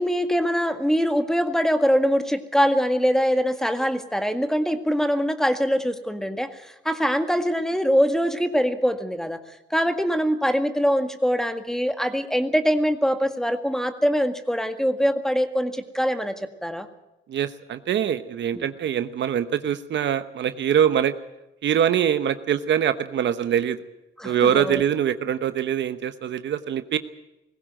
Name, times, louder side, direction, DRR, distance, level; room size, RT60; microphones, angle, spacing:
voice 1, 0.0-16.9 18.5-18.7 24.2-24.8, equal, ahead, 8 dB, 1.9 m, -23 dB
voice 2, 17.3-21.1 21.6-23.8 24.2-27.0, right 9 dB, 65° right, 11 dB, 1.1 m, -23 dB
20.5 x 16.0 x 9.0 m, 0.94 s
cardioid pair, 90°, 20 cm